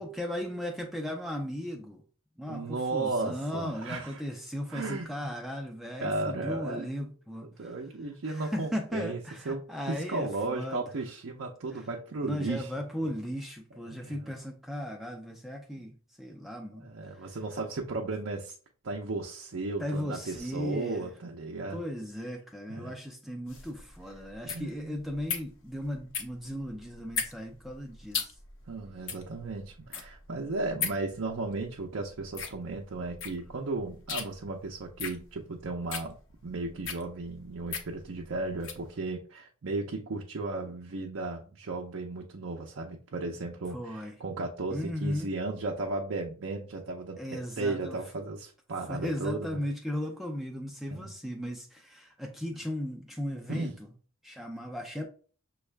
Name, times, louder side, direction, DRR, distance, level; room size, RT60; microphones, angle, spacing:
voice 1, 0.0-2.0 2.4-7.8 8.3-10.9 11.7-11.8 12.2-17.3 19.8-21.1 21.7-28.3 43.7-44.1 44.7-45.3 47.2-48.0 48.9-53.9 54.2-55.0, equal, ahead, 0.4 m, -36 dB
voice 2, 2.5-4.2 4.7-5.1 6.0-6.9 7.6-9.2 9.4-12.7 13.0-13.1 13.9-14.4 16.8-18.6 18.8-21.8 22.7-22.9 24.5-25.0 28.7-36.2 36.4-49.6 50.9-51.1 53.5-53.8, right 3 dB, 60° right, 0.5 m, -35 dB
sound 1, 23.5-38.9, left 6 dB, 65° left, 0.8 m, -38 dB
6.2 x 2.3 x 3.3 m
head